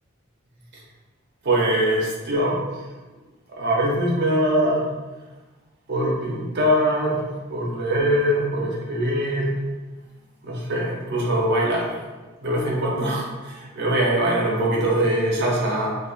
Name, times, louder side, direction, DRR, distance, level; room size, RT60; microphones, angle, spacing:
voice 1, 1.4-2.6 3.5-4.9 5.9-7.2 7.5-9.5 10.4-12.0 12.4-16.0, right 1 dB, 55° right, -4 dB, 0.7 m, -22 dB
3.8 x 2.5 x 2.3 m, 1.2 s
head